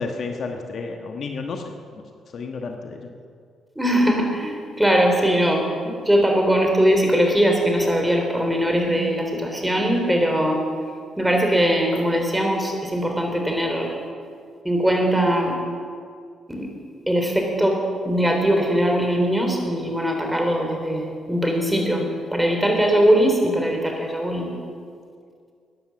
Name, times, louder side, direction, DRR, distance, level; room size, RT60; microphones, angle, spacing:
voice 1, 0.0-2.0 2.3-3.1, left 4 dB, 60° left, 4 dB, 1.3 m, -31 dB
voice 2, 3.8-10.6 11.2-13.9 14.6-15.5 16.5-16.7 17.1-17.8 18.1-24.5, equal, 10° right, 2 dB, 3.6 m, -21 dB
14.0 x 10.0 x 7.2 m, 2.2 s
supercardioid pair, 60°, 0 cm